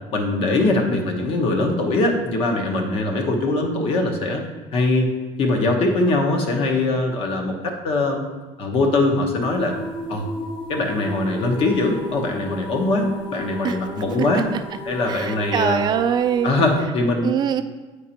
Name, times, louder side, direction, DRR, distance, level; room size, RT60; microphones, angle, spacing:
voice 1, 0.1-4.4 4.7-5.1 5.4-8.2 8.6-9.8 10.1-10.3 10.7-14.5 14.8-15.8 16.4-17.3, left 2 dB, 50° left, 3 dB, 1.0 m, -21 dB
sound 1, 9.4-16.8, left 1 dB, 70° left, 1.2 m, -35 dB
voice 2, 15.1-16.5 17.2-17.6, right 8 dB, 35° right, 9 dB, 0.4 m, -22 dB
8.3 x 5.1 x 2.9 m, 1.3 s
cardioid pair, 150°, 12 cm